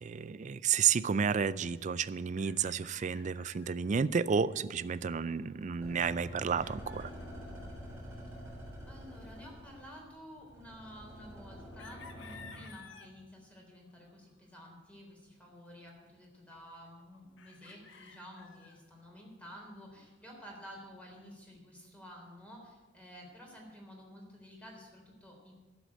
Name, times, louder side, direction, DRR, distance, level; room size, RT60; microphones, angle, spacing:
voice 1, 0.0-7.1, right 6 dB, 40° right, 17 dB, 0.4 m, -31 dB
sound 1, 1.3-3.8 4.1-4.2 4.4-7.3 8.2-8.3 10.3-13.1 13.9-14.6 15.9-16.0 16.2-18.8 20.3-20.9, left 5 dB, 80° left, 1.1 m, -56 dB
sound 2, 5.8-12.5, equal, 10° right, 3.2 m, -47 dB
voice 2, 8.9-25.5, equal, 5° left, -1 dB, 3.4 m, -51 dB
12.0 x 7.7 x 8.3 m, 1.3 s
head